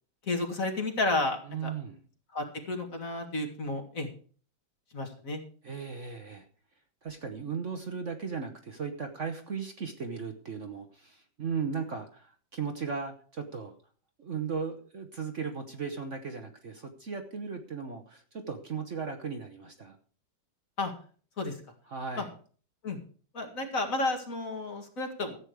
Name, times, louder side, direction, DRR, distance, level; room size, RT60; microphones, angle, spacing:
voice 1, 0.2-1.7 2.3-4.1 4.9-5.4 20.8-20.9 21.4-21.6 22.2-22.3 22.8-23.0 23.3-25.4, left 2 dB, 45° left, 4 dB, 2.3 m, -32 dB
voice 2, 1.5-2.0 5.6-6.5 7.0-13.8 14.2-20.0 21.9-22.3, right 5 dB, 45° right, 5 dB, 1.3 m, -36 dB
14.0 x 8.6 x 4.8 m, 0.43 s
omnidirectional pair, 2.0 m